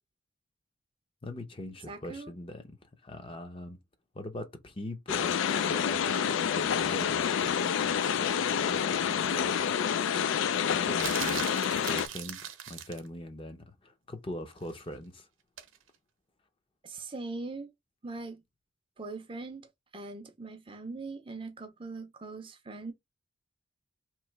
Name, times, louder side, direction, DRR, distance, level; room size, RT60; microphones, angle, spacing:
voice 1, 1.2-2.7 3.0-3.8 4.1-9.8 10.7-15.3, left 1 dB, 25° left, 0.6 m, -42 dB
voice 2, 1.9-2.3 16.8-17.7 18.0-18.4 19.0-22.9, right 3 dB, 25° right, 0.5 m, -41 dB
sound 1, 5.1-12.1, left 8 dB, 75° left, 0.3 m, -28 dB
sound 2, 11.0-13.1 15.6-15.8, right 9 dB, 80° right, 0.7 m, -38 dB
3.0 x 2.8 x 4.5 m
head